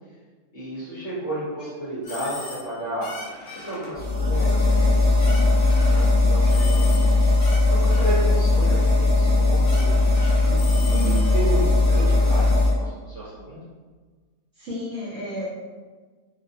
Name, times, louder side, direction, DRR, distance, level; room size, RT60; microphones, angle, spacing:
voice 1, 0.5-3.1 3.5-5.5 5.9-7.0 7.4-13.6, right 1 dB, 55° left, -12 dB, 1.1 m, -33 dB
sound 1, 2.0-2.7 3.0-3.9 4.3-4.9 5.2-6.1 6.4-8.3 8.7-8.9 9.3-9.4 9.6-10.6 10.9-12.5, left 2 dB, 85° left, 1.2 m, -42 dB
sound 2, 2.0-3.0 6.5-7.5 10.5-11.7, left 3 dB, 35° left, 1.4 m, -38 dB
sound 3, 3.9-12.7, left 2 dB, 30° right, 0.7 m, -19 dB
voice 2, 10.9-11.3 14.5-15.5, right 2 dB, 60° right, -8 dB, 1.0 m, -31 dB
2.8 x 2.1 x 2.6 m, 1.4 s
omnidirectional pair, 1.6 m